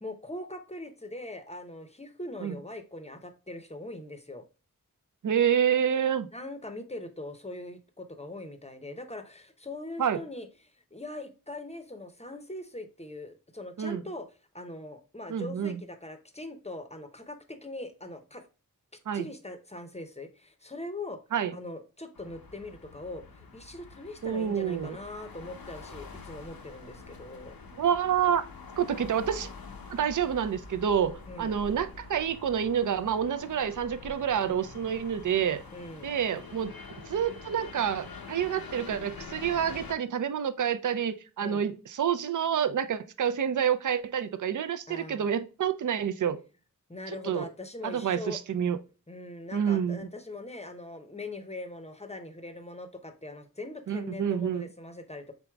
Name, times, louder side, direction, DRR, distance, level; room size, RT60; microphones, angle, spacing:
voice 1, 0.0-4.4 6.3-10.5 10.9-14.3 14.5-18.5 19.1-21.2 21.5-27.6 31.3-31.6 35.7-36.1 41.4-41.7 44.9-45.3 46.9-48.4 49.1-55.3, left 2 dB, 20° left, 0.6 m, -41 dB
voice 2, 5.2-6.3 10.0-10.2 13.8-14.0 15.3-15.8 19.1-19.3 21.3-21.5 24.2-25.0 27.8-28.4 28.8-29.5 29.9-35.6 36.0-36.7 37.1-46.4 47.2-47.5 47.8-48.8 49.5-50.1 53.9-54.7, right 8 dB, 60° right, 0.5 m, -28 dB
sound 1, 22.1-39.9, left 4 dB, 90° left, 0.7 m, -46 dB
4.6 x 3.9 x 2.2 m
wide cardioid pair, 50°, 35 cm